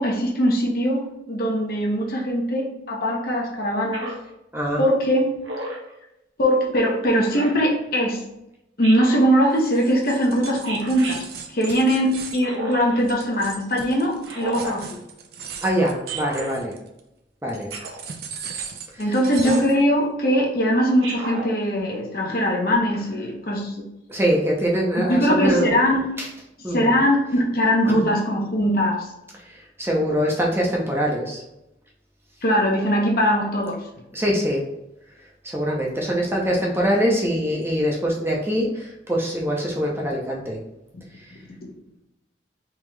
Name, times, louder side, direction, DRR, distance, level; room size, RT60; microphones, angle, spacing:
voice 1, 0.0-4.1 4.8-5.3 6.4-8.2 8.8-11.2 11.5-15.0 19.0-23.9 25.0-26.1 26.7-29.1 32.4-33.8, equal, 55° left, -1 dB, 0.8 m, -21 dB
Speech synthesizer, 3.9-4.3 5.4-5.9 7.3-7.7 8.8-9.3 10.6-11.2 12.4-13.0 14.2-14.8 16.1-16.5 17.7-18.0 19.4-19.7 21.0-21.5, equal, 85° right, 1.0 m, -32 dB
sound 1, 9.5-17.0 17.5-19.8, right 6 dB, 55° right, 0.4 m, -38 dB
voice 2, 15.6-16.7 17.4-17.7 18.9-19.1 24.1-25.7 26.2-26.3 26.6-27.0 28.0-28.1 29.5-31.4 34.1-34.6 35.4-40.6, equal, 15° right, -2 dB, 0.6 m, -23 dB
3.6 x 2.9 x 3.2 m, 0.89 s
head